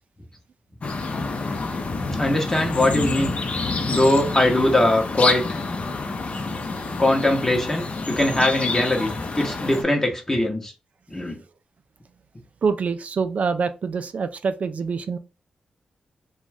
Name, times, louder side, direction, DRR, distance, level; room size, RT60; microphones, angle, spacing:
sound 1, 0.8-9.8, left 3 dB, 55° left, 0.6 m, -28 dB
voice 1, 2.2-3.3 3.9-5.6 7.0-10.7 11.1-11.4, left 1 dB, 20° left, 0.8 m, -21 dB
voice 2, 12.6-15.2, right 5 dB, 60° right, 0.3 m, -25 dB
2.5 x 2.3 x 3.2 m
cardioid pair, 55°, 3 cm